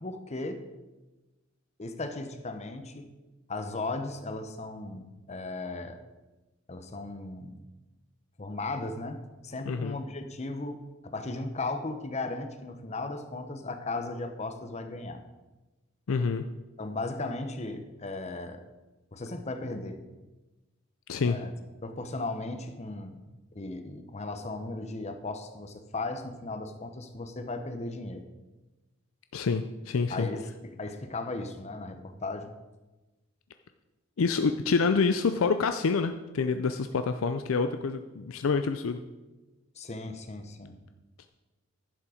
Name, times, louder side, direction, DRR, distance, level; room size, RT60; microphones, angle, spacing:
voice 1, 0.0-0.6 1.8-3.1 3.5-6.0 6.7-7.6 8.4-15.2 16.8-18.6 19.1-20.0 21.2-21.5 21.8-28.3 30.1-32.5 39.8-40.7, left 2 dB, 35° left, 7 dB, 0.9 m, -36 dB
voice 2, 16.1-16.4 21.1-21.4 29.3-30.3 34.2-39.0, left 4 dB, 85° left, 8 dB, 0.5 m, -27 dB
11.0 x 7.3 x 5.0 m, 1.1 s
head